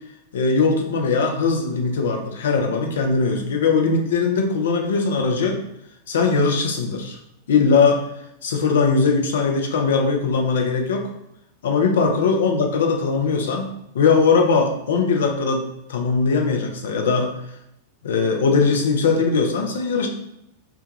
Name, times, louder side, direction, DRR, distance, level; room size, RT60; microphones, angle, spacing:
voice 1, 0.3-5.6 6.1-7.2 7.5-8.0 8.4-11.1 11.6-17.3 18.0-20.1, left 4 dB, 60° left, 3 dB, 0.5 m, -20 dB
2.3 x 2.2 x 3.1 m, 0.81 s
figure-of-eight pair, 90°, 0 cm